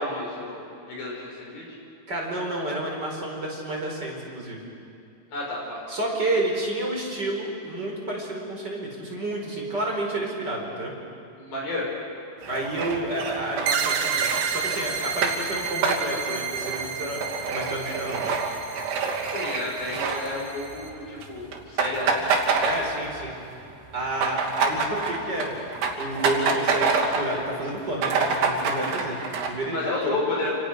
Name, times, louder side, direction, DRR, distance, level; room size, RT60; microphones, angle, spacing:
voice 1, 0.0-1.6 5.3-5.8 11.4-11.9 19.3-22.1 29.7-30.6, left 2 dB, 55° left, -3 dB, 7.8 m, -31 dB
voice 2, 2.1-4.6 5.9-10.9 12.5-18.4 22.6-23.3 23.9-30.2, right 1 dB, 25° right, -1 dB, 4.9 m, -30 dB
sound 1, 12.4-20.8 21.1-21.3 21.5-23.3 23.6-27.4 27.7-27.8 28.0-29.5, right 4 dB, 65° right, 4.9 m, -27 dB
sound 2, 13.7-20.9, right 6 dB, 85° right, 4.1 m, -31 dB
29.0 x 29.0 x 6.6 m, 2.7 s
omnidirectional pair, 5.0 m